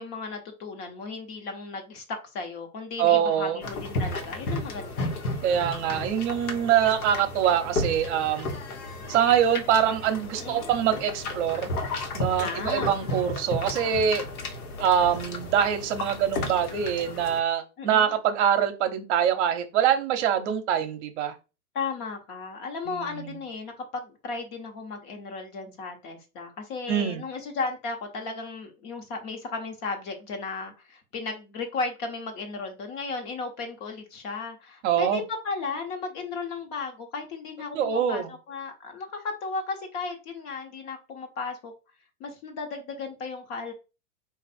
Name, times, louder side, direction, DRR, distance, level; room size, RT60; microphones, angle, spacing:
voice 1, 0.0-5.1 10.4-10.7 12.4-13.0 17.8-18.2 21.7-41.7 42.2-43.7, left 4 dB, 40° left, 1.2 m, -35 dB
voice 2, 3.0-3.6 5.4-8.5 9.1-11.7 12.1-14.2 14.8-21.3 22.9-23.3 26.9-27.2 34.8-35.2 37.7-38.3, right 9 dB, 50° right, 0.8 m, -24 dB
sound 1, 3.6-17.4, left 2 dB, 75° left, 1.3 m, -33 dB
4.0 x 2.6 x 4.2 m
hypercardioid pair, 130°, 45 cm